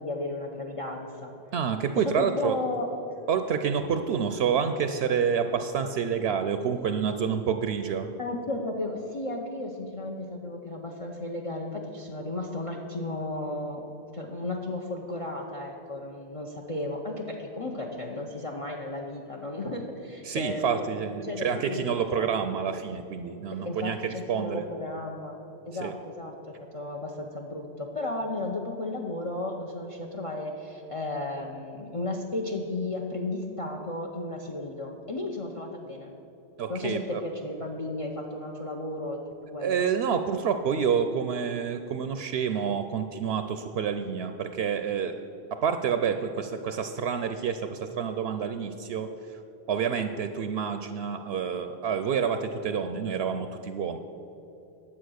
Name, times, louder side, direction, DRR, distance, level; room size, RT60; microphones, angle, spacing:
voice 1, 0.0-1.3 2.0-2.9 8.2-13.9 14.1-20.9 21.2-22.3 23.6-25.4 25.7-36.1 36.7-39.2 39.5-39.9, left 2 dB, 35° left, 2 dB, 0.8 m, -34 dB
voice 2, 1.5-2.6 3.3-8.1 20.2-24.7 25.8-25.9 36.6-37.2 39.6-45.1 45.6-49.1 49.7-54.0, right 7 dB, 75° right, 8 dB, 0.8 m, -28 dB
10.5 x 7.5 x 6.3 m, 3.0 s
omnidirectional pair, 1.1 m